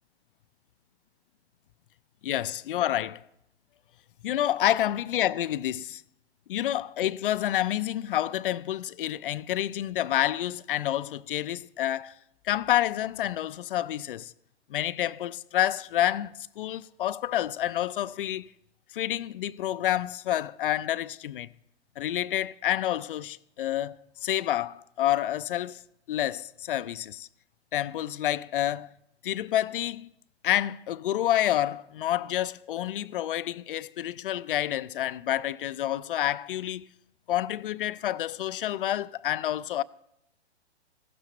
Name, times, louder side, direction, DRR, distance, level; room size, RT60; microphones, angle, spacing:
voice 1, 2.2-3.2 4.2-6.0 6.5-12.2 12.4-14.3 14.7-18.5 18.9-21.5 22.0-24.0 24.2-25.8 26.1-27.3 27.7-28.9 29.2-30.1 30.4-36.9 37.3-39.8, left 12 dB, 50° left, 0.4 m, -28 dB
15.5 x 13.0 x 3.0 m
hypercardioid pair, 135°, 34 cm